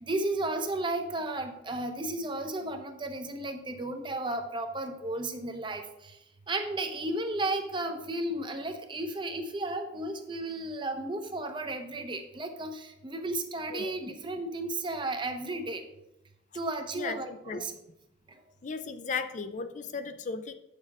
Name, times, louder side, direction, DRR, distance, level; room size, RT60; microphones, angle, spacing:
voice 1, 0.0-6.2 6.5-15.8 16.5-17.7, right 2 dB, 25° right, 6 dB, 0.8 m, -34 dB
voice 2, 17.0-17.7 18.6-20.5, left 5 dB, 40° left, 9 dB, 0.5 m, -36 dB
8.5 x 6.6 x 3.6 m, 0.88 s
head